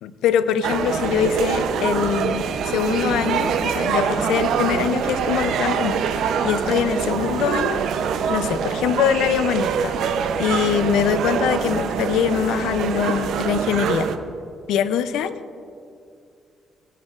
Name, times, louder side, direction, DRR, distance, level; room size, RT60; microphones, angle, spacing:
voice 1, 0.0-7.8 8.3-14.1 14.7-15.4, left 8 dB, 90° left, 12 dB, 0.5 m, -23 dB
sound 1, 0.6-14.2, right 7 dB, 75° right, 0.6 m, -24 dB
17.5 x 9.9 x 2.4 m, 2.5 s
cardioid pair, 90°, 0 cm